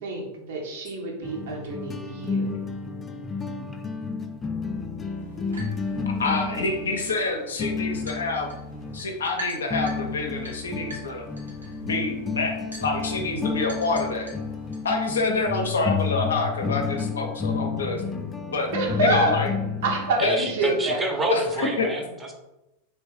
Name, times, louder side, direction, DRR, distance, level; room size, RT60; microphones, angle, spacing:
voice 1, 0.0-2.5 15.3-15.7 18.7-19.4 19.8-21.0, right 2 dB, 55° right, 1 dB, 0.8 m, -27 dB
sound 1, 1.2-9.2 9.7-20.5, left 5 dB, 20° left, 0.3 m, -31 dB
sound 2, 5.2-14.9, left 1 dB, 80° right, 1.1 m, -44 dB
voice 2, 6.2-8.5 8.9-11.3 11.8-14.3 14.8-18.2 18.5-18.7 19.0-19.5 20.2-20.4 21.3-21.9, left 3 dB, 70° left, 3 dB, 0.6 m, -27 dB
voice 3, 20.2-22.3, right 2 dB, 15° right, 2 dB, 0.7 m, -28 dB
3.1 x 3.0 x 3.2 m, 0.93 s
figure-of-eight pair, 90°, 0 cm